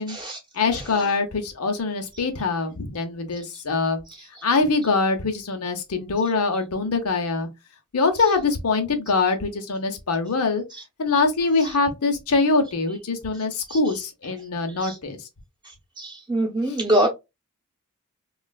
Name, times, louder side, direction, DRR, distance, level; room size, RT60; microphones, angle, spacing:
voice 1, 0.0-0.4 13.7-13.8 14.8-14.9 16.0-17.1, right 1 dB, 20° right, 0.8 m, -23 dB
voice 2, 0.5-4.0 4.4-7.5 7.9-10.6 11.0-15.3 16.7-16.8, left 3 dB, 90° left, 0.8 m, -23 dB
3.2 x 2.4 x 2.3 m
head